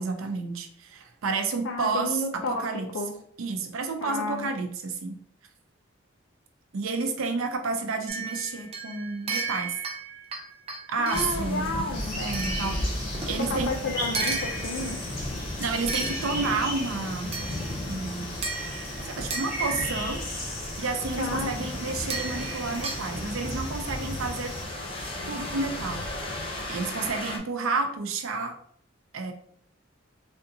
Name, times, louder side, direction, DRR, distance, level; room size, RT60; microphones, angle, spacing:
voice 1, 0.0-2.9 3.4-5.2 6.7-9.8 10.9-11.7 12.2-13.7 15.6-17.3 17.9-18.3 19.2-20.2 20.8-24.5 25.3-26.1 26.7-28.5 29.1-29.3, right 4 dB, 90° right, 5 dB, 0.6 m, -30 dB
voice 2, 1.6-3.1 4.0-4.5 11.0-12.2 13.5-15.0 21.2-21.5, left 2 dB, 75° left, 1 dB, 0.4 m, -32 dB
sound 1, 8.1-11.5 12.3-13.4 14.1-15.1 15.9-16.7 17.3-17.9 18.4-20.1 22.1-23.1, right 4 dB, 30° right, 0.5 m, -35 dB
sound 2, 11.1-27.4, left 1 dB, 25° left, 0.7 m, -35 dB
sound 3, 11.9-24.6, left 1 dB, 50° left, 1.4 m, -37 dB
3.3 x 2.7 x 2.6 m, 0.63 s
head